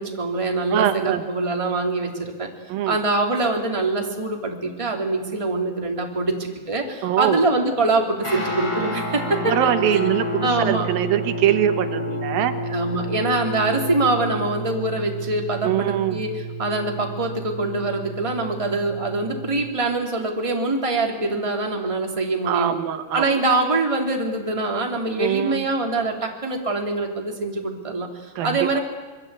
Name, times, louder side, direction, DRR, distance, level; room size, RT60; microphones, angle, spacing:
voice 1, 0.0-2.5 2.9-10.0 10.4-10.9 12.6-22.7 23.1-28.8, right 2 dB, 10° right, 2 dB, 2.5 m, -24 dB
voice 2, 0.7-1.2 2.7-3.0 7.0-7.4 9.5-12.5 15.6-16.2 22.5-23.3 25.1-25.6 28.4-28.8, right 11 dB, 85° right, 9 dB, 3.0 m, -23 dB
Guitar, 8.2-19.7, equal, 30° left, 6.2 m, -30 dB
26.5 x 22.0 x 8.3 m, 1.4 s
omnidirectional pair, 4.1 m